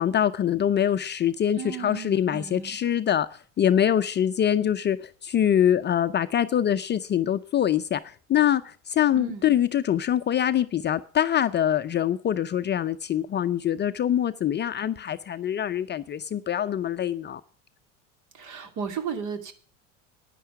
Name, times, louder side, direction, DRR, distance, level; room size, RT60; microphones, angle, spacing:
voice 1, 0.0-17.4, left 10 dB, 25° left, 0.6 m, -24 dB
voice 2, 1.5-2.8 9.1-9.4 18.3-19.5, right 7 dB, 50° right, 2.6 m, -34 dB
10.0 x 10.0 x 5.9 m
hypercardioid pair, 80°, 39 cm